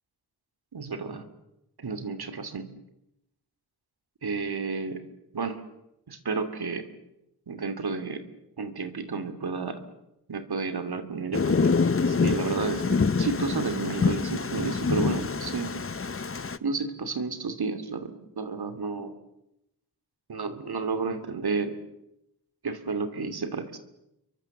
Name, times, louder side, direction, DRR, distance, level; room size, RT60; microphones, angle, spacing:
voice 1, 0.7-1.2 1.8-2.7 4.2-5.0 5.3-5.6 6.1-6.8 7.5-8.2 8.6-9.8 10.3-11.7 12.1-15.7 16.6-19.1 20.3-21.7 22.6-23.8, right 4 dB, 70° right, 9 dB, 2.7 m, -31 dB
Thunder, 11.3-16.6, left 4 dB, 35° left, 0.9 m, -26 dB
30.0 x 23.0 x 7.3 m, 0.87 s
wide cardioid pair, 70°, 39 cm